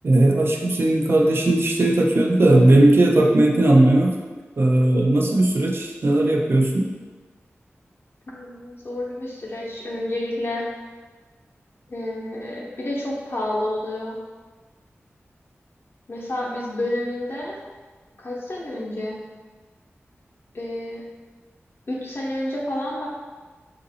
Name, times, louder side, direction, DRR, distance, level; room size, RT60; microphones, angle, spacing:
voice 1, 0.0-4.2 4.6-6.9, right 1 dB, 55° right, 0 dB, 0.4 m, -17 dB
voice 2, 8.3-10.7 11.9-14.2 16.1-17.6 18.2-19.2 20.5-21.1 21.9-23.1, left 1 dB, 55° left, -4 dB, 0.7 m, -29 dB
3.8 x 2.5 x 2.7 m, 1.4 s
wide cardioid pair, 70°, 5 cm